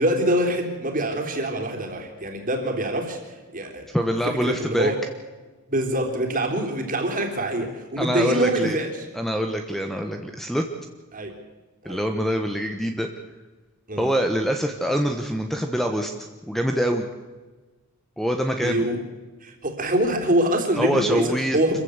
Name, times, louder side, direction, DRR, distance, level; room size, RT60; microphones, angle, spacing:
voice 1, 0.0-3.2 3.5-3.9 4.3-5.0 5.7-8.9 11.1-11.3 11.8-12.0 13.9-14.1 18.5-19.0 19.4-21.8, right 1 dB, 40° right, 3 dB, 3.6 m, -24 dB
voice 2, 3.9-4.9 8.0-8.8 9.1-10.6 11.8-13.1 14.0-16.1 16.5-17.0 18.2-18.8 20.8-21.6, equal, ahead, 5 dB, 1.2 m, -24 dB
26.5 x 15.0 x 8.1 m, 1.3 s
head